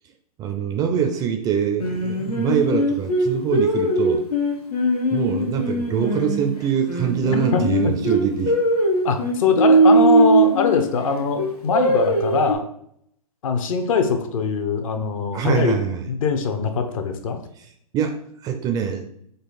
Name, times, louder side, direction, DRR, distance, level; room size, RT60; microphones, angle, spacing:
voice 1, 0.4-4.2 5.1-8.5 15.3-16.1 17.6-17.7 17.9-19.1, right 7 dB, 20° right, 5 dB, 0.4 m, -24 dB
Singing, 1.8-6.5 6.9-10.9 11.4-12.6, right 1 dB, 90° left, 0.9 m, -20 dB
voice 2, 7.5-7.9 9.0-12.6 13.4-15.8 16.1-17.4, left 5 dB, 60° left, 6 dB, 0.8 m, -22 dB
3.8 x 2.4 x 4.1 m, 0.68 s
hypercardioid pair, 120°, 19 cm